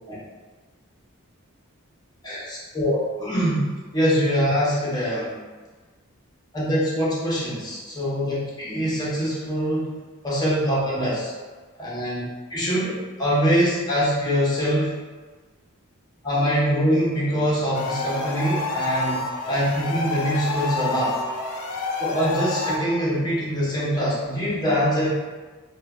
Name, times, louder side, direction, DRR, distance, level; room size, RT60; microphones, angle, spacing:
voice 1, 2.2-3.7 3.9-5.4 6.5-9.9 10.2-11.3 11.8-14.9 16.2-21.1 22.0-25.1, equal, 20° left, -7 dB, 0.7 m, -24 dB
sound 1, 17.7-22.8, left 3 dB, 90° left, 0.4 m, -28 dB
3.0 x 2.1 x 2.3 m, 1.3 s
head